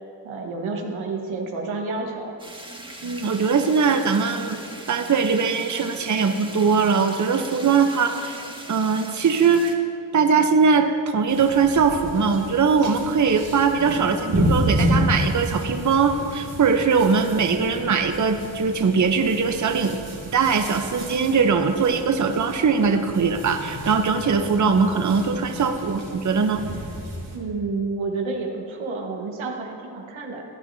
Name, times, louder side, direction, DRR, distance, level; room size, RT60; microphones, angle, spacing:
voice 1, 0.2-2.3 27.3-30.4, right 3 dB, 85° right, 1 dB, 1.4 m, -29 dB
sound 1, 2.4-9.7, right 1 dB, 10° right, 1.7 m, -40 dB
voice 2, 3.0-4.6 4.9-8.4 8.7-9.8 10.1-20.0 20.3-26.7, right 5 dB, 40° right, 6 dB, 0.8 m, -21 dB
sound 2, 11.3-27.4, equal, 65° right, 2.6 m, -30 dB
16.0 x 11.0 x 2.7 m, 2.4 s
supercardioid pair, 45°, 47 cm